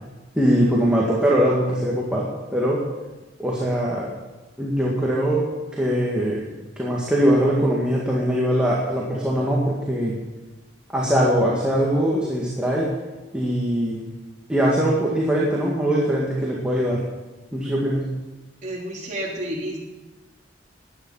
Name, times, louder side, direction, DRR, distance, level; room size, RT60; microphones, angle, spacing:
voice 1, 0.4-2.8 3.4-4.1 4.6-6.5 6.8-10.2 10.9-12.9 13.3-14.0 14.5-17.0 17.5-18.1, equal, 5° right, -5 dB, 2.0 m, -21 dB
voice 2, 18.6-19.8, right 1 dB, 40° right, -3 dB, 3.4 m, -30 dB
15.5 x 10.5 x 5.6 m, 1.2 s
head